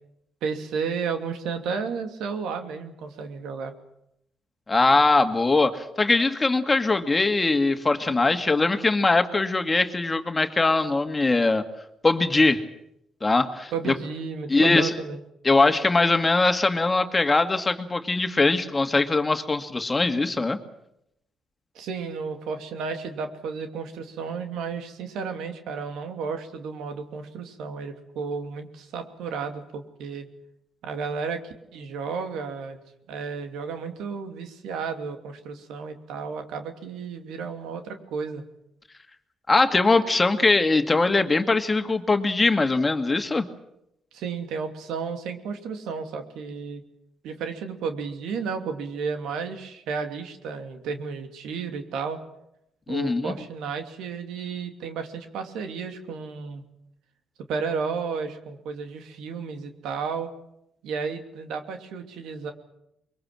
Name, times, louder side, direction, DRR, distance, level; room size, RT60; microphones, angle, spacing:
voice 1, 0.4-3.7 13.7-15.2 21.7-30.3 30.8-32.8 33.1-38.4 44.1-46.8 47.2-52.2 52.9-56.6 57.5-60.3 60.8-62.5, right 5 dB, 85° right, 6 dB, 2.7 m, -33 dB
voice 2, 4.7-11.6 12.0-12.6 13.2-13.7 14.5-14.9 15.4-20.6 39.5-43.5 52.9-53.3, left 3 dB, 25° left, 7 dB, 2.1 m, -21 dB
24.0 x 22.5 x 7.7 m, 0.80 s
cardioid pair, 90°, 0 cm